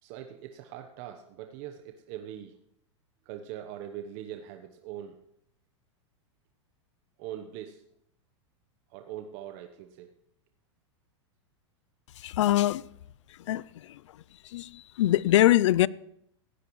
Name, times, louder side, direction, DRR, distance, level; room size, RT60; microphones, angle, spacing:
voice 1, 0.0-2.6 3.2-5.2 7.2-7.8 8.9-10.1, right 11 dB, 50° right, 1.1 m, -42 dB
voice 2, 12.2-12.9 13.3-14.0 14.4-15.9, left 14 dB, 75° left, 0.5 m, -24 dB
18.0 x 16.5 x 3.2 m
hypercardioid pair, 115°, 16 cm